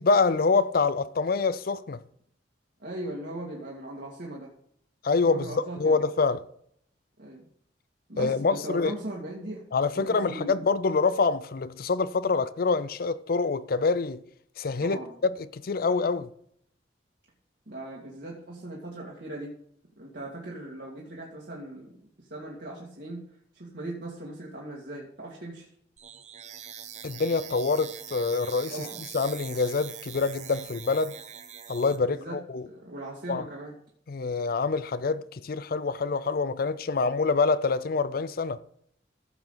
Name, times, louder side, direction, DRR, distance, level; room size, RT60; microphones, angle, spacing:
voice 1, 0.0-2.0 5.0-5.5 5.8-6.4 8.2-8.9 9.7-14.2 14.6-16.3 27.0-28.7 29.1-31.2 31.7-32.6 33.3-33.4 34.1-38.6, left 4 dB, 55° left, 0.5 m, -26 dB
voice 2, 2.8-4.5 5.2-6.0 7.2-7.5 8.1-9.6 9.9-10.7 14.8-15.2 17.7-19.5 20.0-23.3 23.5-25.7 28.7-29.1 32.0-32.4 32.7-33.8, right 1 dB, 60° right, 2.2 m, -39 dB
sound 1, 26.0-32.0, right 8 dB, 40° right, 1.1 m, -43 dB
15.0 x 7.2 x 4.0 m
head